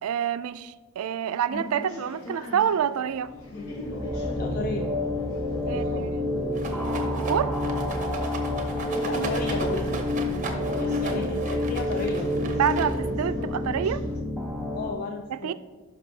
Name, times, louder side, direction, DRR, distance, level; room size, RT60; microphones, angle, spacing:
voice 1, 0.0-3.3 5.7-6.3 6.6-7.5 10.8-11.0 12.4-14.0 15.3-15.5, right 8 dB, 80° right, 13 dB, 0.3 m, -28 dB
sound 1, 1.5-14.2, equal, 80° left, 1.1 m, -41 dB
sound 2, 3.3-14.9, left 1 dB, ahead, 0.6 m, -29 dB
voice 2, 4.4-4.9 5.7-6.1 9.0-10.1 10.6-12.3 14.7-15.5, left 4 dB, 40° left, 3 dB, 0.4 m, -33 dB
Rattle, 6.5-13.2, right 3 dB, 35° right, 0.8 m, -37 dB
11.0 x 5.3 x 2.7 m, 1.4 s
head